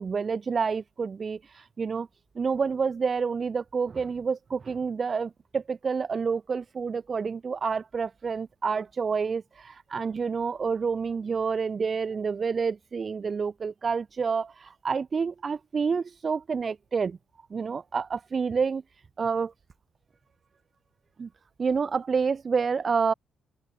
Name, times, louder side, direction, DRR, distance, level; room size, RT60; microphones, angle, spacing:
voice 1, 0.0-2.1 2.3-17.2 17.5-18.8 19.2-19.5 21.2-21.3 21.6-23.1, right 5 dB, 40° right, 1.0 m, -28 dB
cardioid pair, 90°, 0 cm